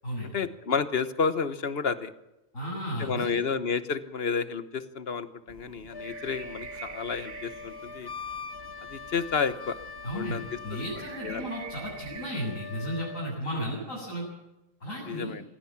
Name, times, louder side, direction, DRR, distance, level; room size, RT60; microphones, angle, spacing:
voice 1, 0.3-2.1 3.0-8.1 8.9-9.8 10.1-10.8 11.2-11.5 15.1-15.4, left 5 dB, 50° left, 12 dB, 1.3 m, -31 dB
voice 2, 2.5-3.4 10.0-14.3 14.8-15.4, equal, 85° left, -7 dB, 8.0 m, -34 dB
sound 1, 5.5-12.3, right 6 dB, 70° right, 1.6 m, -46 dB
Wind instrument woodwind instrument, 5.9-13.3, left 4 dB, 25° left, 0.5 m, -42 dB
22.5 x 16.5 x 7.4 m, 0.92 s
omnidirectional pair, 1.3 m